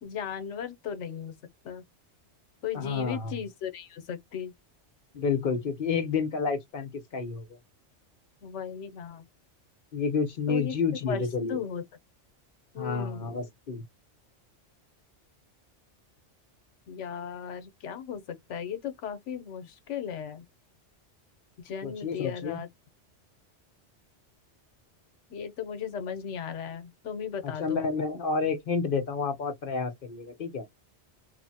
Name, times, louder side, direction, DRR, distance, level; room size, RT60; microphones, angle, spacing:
voice 1, 0.0-1.4 1.6-1.8 2.6-4.5 8.4-9.2 10.5-10.7 11.1-11.2 11.5-11.9 12.7-13.3 16.9-20.4 21.6-22.7 25.3-27.8, left 8 dB, 85° left, 1.0 m, -36 dB
voice 2, 2.7-3.3 5.1-7.6 9.9-11.6 12.8-13.8 21.8-22.6 27.4-30.7, left 5 dB, 55° left, 0.8 m, -30 dB
3.1 x 2.0 x 2.7 m
omnidirectional pair, 1.2 m